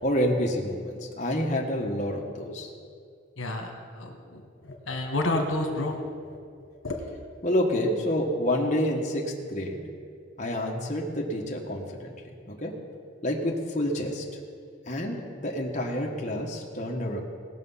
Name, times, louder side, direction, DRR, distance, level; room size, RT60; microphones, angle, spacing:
voice 1, 0.0-2.7 7.4-9.8 10.4-12.1 12.5-12.8 13.2-14.2 14.9-17.2, left 1 dB, 35° left, -1 dB, 1.2 m, -28 dB
voice 2, 3.4-3.7 4.0-4.4 4.9-6.0 6.8-6.9, left 2 dB, 80° left, 3 dB, 1.5 m, -29 dB
18.5 x 6.7 x 5.6 m, 2.2 s
head